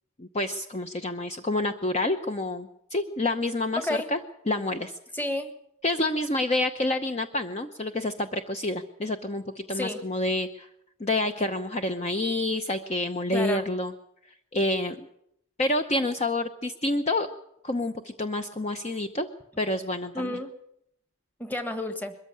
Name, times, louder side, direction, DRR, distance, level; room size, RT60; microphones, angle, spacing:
voice 1, 0.2-4.2 4.5-4.9 5.8-10.7 11.0-13.9 14.5-15.1 15.6-17.3 17.6-19.3 19.6-20.4, left 2 dB, 30° left, 7 dB, 0.8 m, -28 dB
voice 2, 3.8-4.1 5.1-5.5 9.7-10.0 13.3-13.6 20.1-20.6 21.4-22.1, left 1 dB, 10° left, 8 dB, 1.5 m, -31 dB
22.0 x 14.0 x 8.7 m, 0.75 s
head